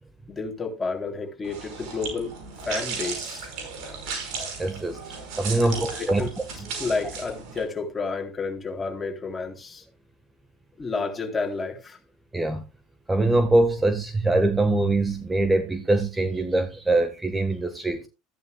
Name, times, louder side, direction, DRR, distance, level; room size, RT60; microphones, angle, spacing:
voice 1, 0.3-3.5 3.8-4.0 5.6-6.3 6.8-9.8 10.8-12.0, left 4 dB, 20° left, 3.5 m, -31 dB
sound 1, 1.4-7.6, right 5 dB, 65° right, 5.3 m, -35 dB
voice 2, 4.6-6.2 12.3-12.6 13.1-18.1, right 2 dB, 15° right, 1.5 m, -23 dB
14.0 x 10.5 x 2.3 m
hypercardioid pair, 85°, 0 cm